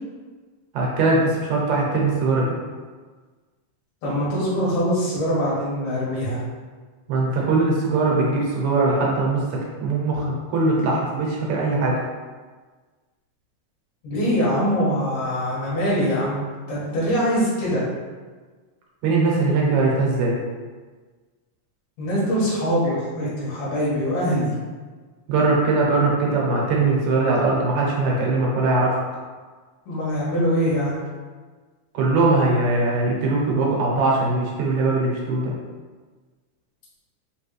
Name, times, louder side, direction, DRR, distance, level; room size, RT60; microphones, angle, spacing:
voice 1, 0.7-2.5 7.1-12.0 19.0-20.4 25.3-29.0 31.9-35.5, right 3 dB, 75° right, -3 dB, 2.1 m, -21 dB
voice 2, 4.0-6.4 14.0-17.8 22.0-24.5 29.9-31.0, equal, 55° left, -7 dB, 2.2 m, -23 dB
4.8 x 3.2 x 3.2 m, 1.4 s
omnidirectional pair, 3.6 m